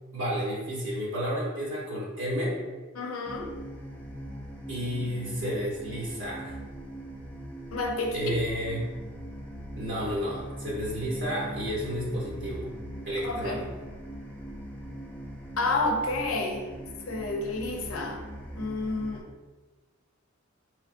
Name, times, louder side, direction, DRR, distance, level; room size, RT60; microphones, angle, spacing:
voice 1, 0.1-2.6 4.7-6.5 8.1-8.9 9.8-12.7 13.1-13.7, equal, 60° right, -6 dB, 0.8 m, -31 dB
voice 2, 2.9-3.5 7.7-8.3 13.2-13.6 15.6-16.6 17.1-18.2 18.5-19.2, left 2 dB, 80° left, 2 dB, 0.6 m, -30 dB
sound 1, 3.3-19.2, equal, 10° left, 0.4 m, -41 dB
4.5 x 3.1 x 2.5 m, 1.3 s
head